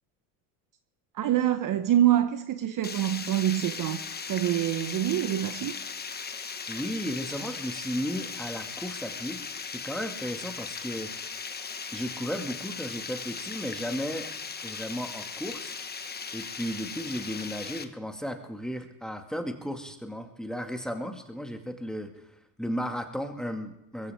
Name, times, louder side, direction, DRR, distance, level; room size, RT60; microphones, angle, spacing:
voice 1, 1.1-5.7, right 12 dB, 45° right, 0.9 m, -26 dB
Water, 2.8-17.8, left 5 dB, 20° left, 1.1 m, -38 dB
voice 2, 6.7-9.4 9.7-11.1 11.9-14.3 14.6-15.7 16.3-22.1 22.6-24.1, equal, ahead, 2.0 m, -34 dB
22.0 x 15.0 x 3.6 m
supercardioid pair, 85°, 46 cm